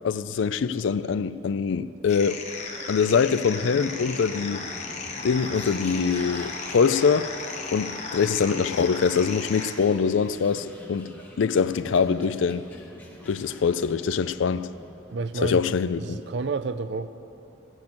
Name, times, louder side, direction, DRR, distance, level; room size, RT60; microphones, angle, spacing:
voice 1, 0.0-2.4 2.9-4.6 5.2-7.3 7.7-11.1 11.4-12.6 13.3-14.7 15.4-16.2, left 6 dB, 85° left, 0.4 m, -24 dB
sound 1, 2.1-9.7, left 4 dB, 35° left, 1.0 m, -35 dB
sound 2, 2.4-15.2, left 1 dB, 10° left, 1.5 m, -46 dB
voice 2, 15.1-17.1, right 3 dB, 65° right, 0.5 m, -30 dB
13.5 x 6.4 x 8.6 m
head